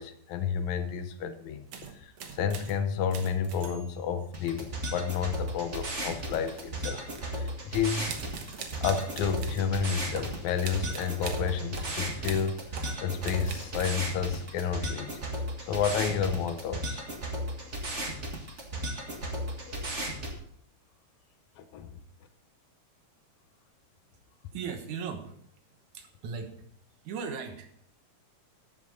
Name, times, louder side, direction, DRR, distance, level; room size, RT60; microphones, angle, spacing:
voice 1, 0.0-1.7 1.9-8.4 8.8-12.6 13.0-17.0 19.7-19.9 21.6-22.0, left 7 dB, 80° left, 9 dB, 2.2 m, -31 dB
sound 1, 1.7-2.8 3.1-4.1 6.0-7.3 8.1-9.7 10.1-14.0, right 6 dB, 65° right, 2.2 m, -43 dB
sound 2, 4.3-20.3, right 1 dB, 30° right, 1.8 m, -35 dB
voice 2, 24.5-25.4 25.9-26.6 27.0-27.7, right 6 dB, 85° right, 6 dB, 2.7 m, -37 dB
13.0 x 8.2 x 4.0 m, 0.67 s
omnidirectional pair, 3.3 m